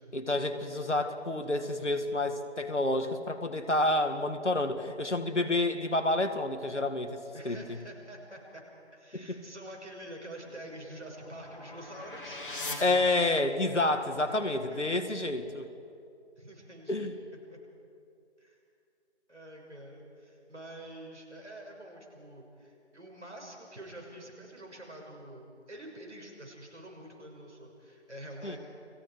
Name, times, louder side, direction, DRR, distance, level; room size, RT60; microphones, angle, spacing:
voice 1, 0.1-7.6 9.1-9.4 12.8-15.7 16.9-17.1 28.4-28.6, left 2 dB, 85° left, 8 dB, 2.2 m, -29 dB
voice 2, 7.3-8.6 8.9-12.4 14.5-15.2 16.4-17.1 17.5-17.6 18.4-18.6 19.3-28.6, right 1 dB, 80° right, 1 dB, 6.0 m, -47 dB
sound 1, 10.4-13.8, left 2 dB, 45° left, 3.0 m, -42 dB
30.0 x 20.5 x 5.0 m, 2.6 s
figure-of-eight pair, 165°, 34 cm